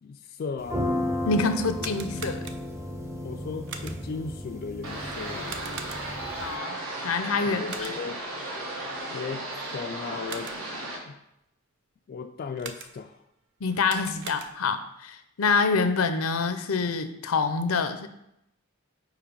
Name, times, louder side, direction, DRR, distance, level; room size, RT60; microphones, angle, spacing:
voice 1, 0.0-0.9 3.2-5.6 7.4-8.2 9.1-10.6 11.1-11.2 12.1-13.2, left 5 dB, 45° left, 6 dB, 0.3 m, -36 dB
sound 1, 0.6-6.5, left 1 dB, 15° right, 0.6 m, -33 dB
voice 2, 1.2-2.4 6.4-7.9 13.6-18.1, left 4 dB, 85° left, 9 dB, 0.6 m, -26 dB
sound 2, 1.6-2.9 3.7-4.2 5.4-6.3 7.7-8.2 10.0-10.8 12.6-13.2 13.7-14.8, right 6 dB, 55° right, 0.6 m, -42 dB
sound 3, 4.8-11.0, right 1 dB, 75° right, 1.4 m, -35 dB
4.9 x 4.6 x 5.2 m, 0.82 s
head